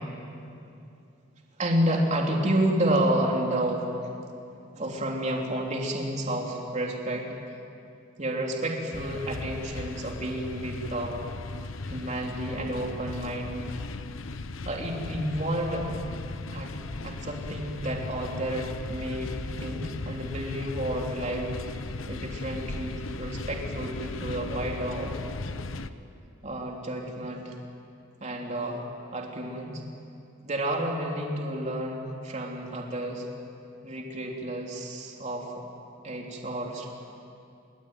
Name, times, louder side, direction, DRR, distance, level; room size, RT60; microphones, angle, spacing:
voice 1, 1.6-3.9 4.7-7.3 8.2-11.2 11.8-13.7 14.6-15.9 16.5-16.7 17.0-19.3 19.6-21.5 22.1-25.2 26.4-27.6 28.2-28.8 29.1-29.8 30.4-33.3 33.8-35.6 36.0-36.9, right 1 dB, 35° right, 0 dB, 3.4 m, -30 dB
sound 1, 8.9-25.9, left 3 dB, 80° left, 1.0 m, -37 dB
27.5 x 23.0 x 9.3 m, 2.6 s
head